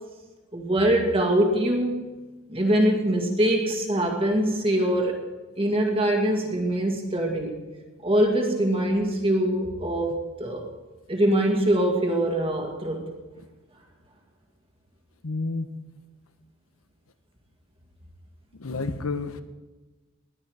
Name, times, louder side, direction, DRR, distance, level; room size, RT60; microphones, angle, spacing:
voice 1, 0.5-2.2 2.5-5.2 5.6-7.6 8.0-10.7 11.1-13.0, right 1 dB, 25° right, 1 dB, 1.9 m, -23 dB
voice 2, 15.2-15.7 18.5-19.4, left 3 dB, 80° left, 11 dB, 1.0 m, -30 dB
20.0 x 11.0 x 4.9 m, 1.2 s
head